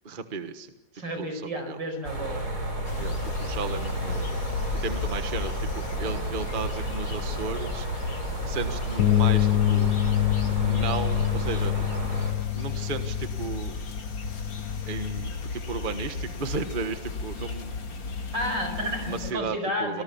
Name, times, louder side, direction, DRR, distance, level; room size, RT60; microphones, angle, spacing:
voice 1, 0.0-0.7 1.2-1.8 3.0-4.3 4.8-5.7 6.0-7.9 8.5-9.9 10.6-11.7 12.5-13.7 14.9-17.8 19.1-20.0, right 4 dB, 30° right, 8 dB, 1.4 m, -34 dB
voice 2, 0.9-2.4 18.3-20.0, equal, 75° right, 6 dB, 5.8 m, -31 dB
sound 1, 2.0-12.3, right 1 dB, 55° right, 5.3 m, -32 dB
sound 2, 2.8-19.3, left 3 dB, 90° left, 3.0 m, -35 dB
Bass guitar, 9.0-15.2, left 16 dB, 70° left, 1.7 m, -26 dB
25.0 x 19.5 x 7.2 m, 0.89 s
omnidirectional pair, 2.0 m